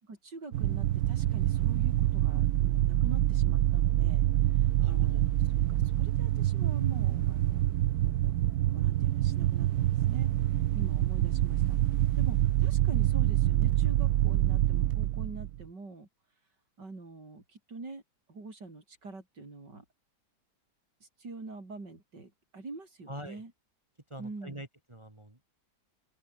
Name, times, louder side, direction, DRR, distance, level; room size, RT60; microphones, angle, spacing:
voice 1, 0.0-5.3 5.7-7.7 8.0-8.3 8.7-16.1 16.8-18.0 18.3-19.8 21.0-23.5 24.2-24.6, right 3 dB, 90° right, 5.6 m, -45 dB
sound 1, 0.5-15.6, right 13 dB, 70° right, 1.1 m, -26 dB
voice 2, 4.8-5.2 23.1-23.4 24.1-25.5, right 1 dB, 15° right, 2.1 m, -44 dB
open air
omnidirectional pair, 1.8 m